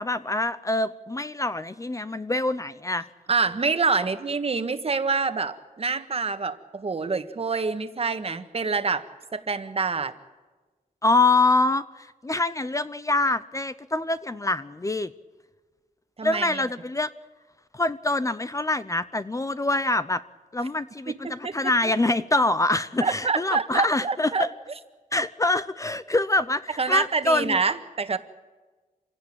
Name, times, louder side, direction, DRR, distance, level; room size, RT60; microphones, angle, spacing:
voice 1, 0.0-3.1 11.0-15.1 16.2-17.1 17.7-20.2 20.5-24.5 25.1-27.6, left 2 dB, 20° left, 13 dB, 0.7 m, -25 dB
voice 2, 3.3-9.1 9.3-10.1 16.2-16.6 21.1-21.5 23.0-24.5 26.8-28.2, right 4 dB, 40° right, 9 dB, 1.5 m, -26 dB
26.0 x 17.0 x 8.9 m, 1.3 s
wide cardioid pair, 115°, 16 cm